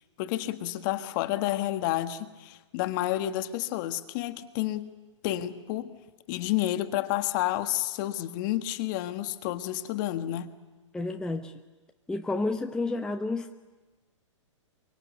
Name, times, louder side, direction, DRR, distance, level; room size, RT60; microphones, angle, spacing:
voice 1, 0.2-4.9 5.2-5.9 6.3-10.5, left 14 dB, 40° left, 1.4 m, -30 dB
voice 2, 10.9-11.5 12.1-13.6, left 2 dB, 5° left, 0.9 m, -30 dB
24.0 x 24.0 x 8.2 m
hypercardioid pair, 120°, 16 cm